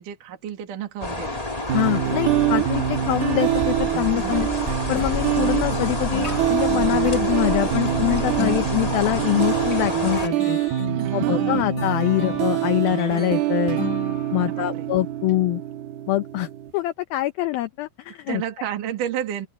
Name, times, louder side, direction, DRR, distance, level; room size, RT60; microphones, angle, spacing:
voice 1, 0.0-1.6 4.1-4.5 11.0-11.7 14.4-14.9 18.3-19.5, right 10 dB, 55° right, 3.6 m, -32 dB
sound 1, 1.0-10.3, left 2 dB, 45° left, 0.4 m, -28 dB
voice 2, 1.7-4.5 4.9-10.6 11.1-13.8 14.3-15.6 16.1-16.5 16.7-18.4, left 16 dB, 75° left, 2.3 m, -24 dB
sound 2, 1.7-16.7, right 12 dB, 70° right, 2.9 m, -25 dB
sound 3, 5.0-14.6, left 4 dB, 25° left, 1.8 m, -35 dB
open air
omnidirectional pair, 5.0 m